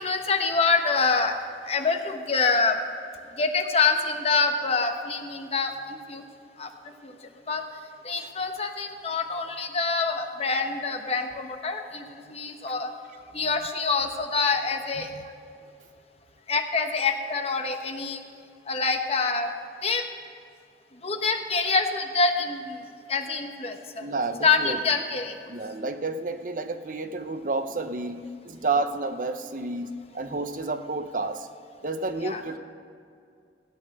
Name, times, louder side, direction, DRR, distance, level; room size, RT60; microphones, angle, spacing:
voice 1, 0.0-1.4 1.7-2.8 3.4-6.2 6.6-6.7 7.0-7.1 7.5-7.6 8.0-12.9 13.3-15.1 16.5-18.2 18.7-19.5 19.8-20.0 21.0-22.8 23.1-24.0 24.4-25.3 32.2-32.4, left 4 dB, 35° left, 5 dB, 1.0 m, -26 dB
voice 2, 24.0-24.8 25.5-31.5 31.8-32.6, right 3 dB, 50° right, 8 dB, 0.7 m, -30 dB
16.5 x 8.8 x 6.6 m, 2.4 s
head